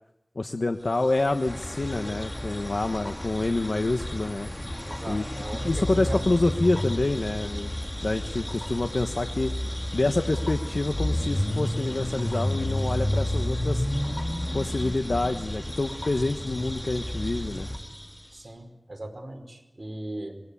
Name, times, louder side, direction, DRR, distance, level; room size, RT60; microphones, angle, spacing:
voice 1, 0.3-4.5 5.1-7.7 8.0-13.9 14.5-17.7, left 2 dB, 80° left, 6 dB, 1.2 m, -27 dB
sound 1, 0.7-18.5, equal, 10° left, 7.3 m, -41 dB
sound 2, 1.5-17.8, left 1 dB, 35° left, 2.3 m, -31 dB
voice 2, 4.8-6.4 18.3-20.4, right 1 dB, 55° right, 4 dB, 4.9 m, -38 dB
25.5 x 21.5 x 8.5 m, 0.91 s
wide cardioid pair, 40°, 0 cm